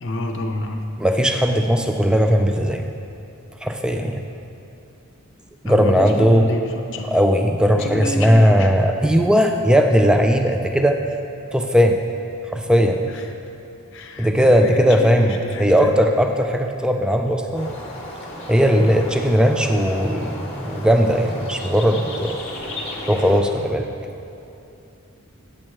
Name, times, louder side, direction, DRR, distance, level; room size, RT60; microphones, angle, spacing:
voice 1, 0.0-1.0 5.6-7.2 7.8-8.7 13.1-13.2 13.9-16.0, left 1 dB, 60° left, 4 dB, 0.6 m, -28 dB
voice 2, 1.0-2.8 3.6-4.2 5.6-6.5 7.1-11.0 11.5-12.0 12.5-13.1 14.2-17.7 18.5-22.4 23.1-23.9, equal, 5° right, 5 dB, 0.3 m, -18 dB
sound 1, 17.5-23.4, left 1 dB, 30° left, 0.9 m, -34 dB
8.5 x 7.5 x 3.1 m, 2.7 s
head